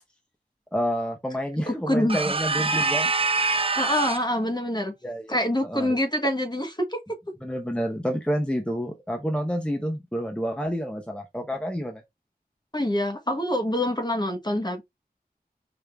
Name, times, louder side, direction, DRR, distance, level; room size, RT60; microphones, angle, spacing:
voice 1, 0.7-3.1 5.0-5.4 5.6-6.0 7.4-12.0, equal, 5° left, 0.9 m, -29 dB
voice 2, 1.7-2.2 3.8-4.9 5.3-7.0 12.7-14.8, left 1 dB, 25° left, 1.3 m, -25 dB
sound 1, 2.1-4.4, right 4 dB, 35° right, 0.4 m, -25 dB
5.0 x 2.7 x 3.5 m
wide cardioid pair, 55°, 16 cm